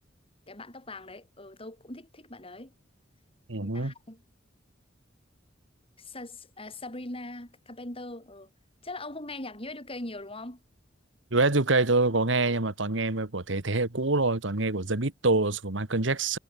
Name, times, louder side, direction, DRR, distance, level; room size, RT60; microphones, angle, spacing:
voice 1, 0.5-2.7 3.6-4.2 6.0-8.5 8.8-10.6, left 2 dB, 30° left, 7.3 m, -41 dB
voice 2, 3.5-3.9 11.3-16.4, right 3 dB, 70° right, 1.8 m, -26 dB
head